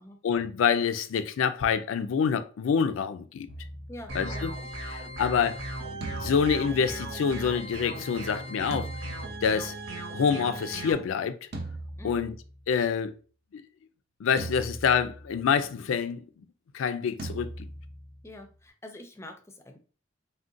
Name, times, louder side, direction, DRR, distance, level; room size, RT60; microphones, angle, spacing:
voice 1, 0.2-3.5 4.1-4.5 4.8-5.6 6.1-8.9 9.4-9.7 10.1-11.4 12.0-12.3 12.7-13.1 13.5-13.6 14.2-16.2 16.7-17.7, left 6 dB, 85° left, 0.4 m, -26 dB
sound 1, 3.5-4.8 6.0-7.7 8.7-10.0 11.5-12.9 14.4-15.6 17.2-18.6, right 2 dB, 55° right, 0.6 m, -41 dB
voice 2, 3.9-4.5 12.0-12.2 18.2-19.8, left 1 dB, 15° left, 0.4 m, -45 dB
sound 2, 4.1-10.9, right 1 dB, 85° right, 0.9 m, -37 dB
3.6 x 2.2 x 2.5 m
head